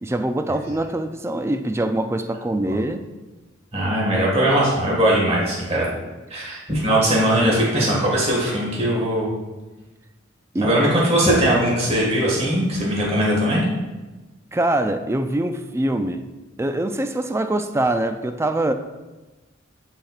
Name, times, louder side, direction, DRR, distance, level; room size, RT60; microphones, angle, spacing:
voice 1, 0.0-3.0 10.5-10.7 14.5-16.3 16.6-18.7, right 1 dB, 15° right, 8 dB, 0.3 m, -23 dB
voice 2, 3.7-5.8 6.3-9.3 10.6-13.6, right 1 dB, 30° right, -5 dB, 1.8 m, -20 dB
12.5 x 4.4 x 2.4 m, 1.2 s
head